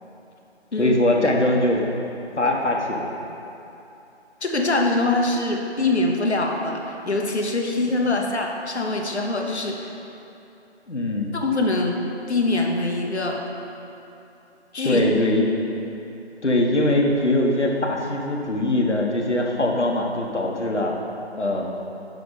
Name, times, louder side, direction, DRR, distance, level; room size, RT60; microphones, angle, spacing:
voice 1, 0.8-1.8 2.4-3.1 8.1-8.3 10.9-11.3 14.8-15.6 16.4-20.9 21.4-21.7, left 1 dB, 90° left, 0 dB, 1.1 m, -22 dB
voice 2, 4.4-6.8 7.1-9.9 11.3-12.0 12.3-13.4 14.7-15.0, left 2 dB, 75° left, 1 dB, 0.9 m, -23 dB
5.8 x 5.3 x 5.4 m, 2.8 s
figure-of-eight pair, 160°, 34 cm